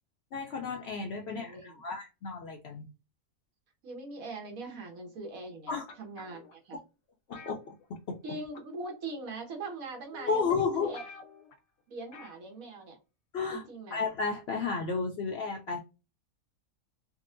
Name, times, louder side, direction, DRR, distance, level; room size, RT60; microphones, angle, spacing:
voice 1, 0.3-2.8 5.7-5.8 7.3-7.6 8.1-8.2 10.2-10.9 13.3-15.8, left 5 dB, 65° left, 0.7 m, -32 dB
voice 2, 1.3-1.8 3.8-6.8 8.2-11.0 11.9-13.0 13.5-14.0, right 3 dB, 80° right, 1.4 m, -41 dB
sound 1, 5.9-6.5 7.3-8.3 8.5-8.9 9.7-9.8 10.3-10.4 10.6-10.7 10.9-11.6 12.1-12.4 12.7-12.8, left 4 dB, 85° left, 1.2 m, -49 dB
3.7 x 2.1 x 2.5 m
omnidirectional pair, 1.4 m